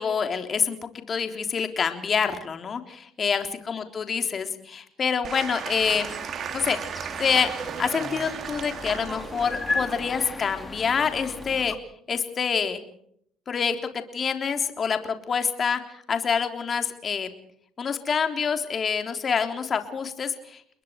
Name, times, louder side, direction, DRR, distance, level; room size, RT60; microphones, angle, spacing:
voice 1, 0.0-6.1 6.5-6.8 7.2-7.5 7.8-11.7 12.1-12.8 13.5-13.8 14.1-15.8 16.1-17.3 17.8-20.8, left 6 dB, 35° left, 7 dB, 3.6 m, -26 dB
Applause / Crowd, 5.2-11.5, right 8 dB, 50° right, 2.4 m, -36 dB
sound 1, 5.8-11.8, left 3 dB, 15° left, 2.2 m, -36 dB
30.0 x 21.5 x 4.7 m, 0.67 s
cardioid pair, 115°, 0 cm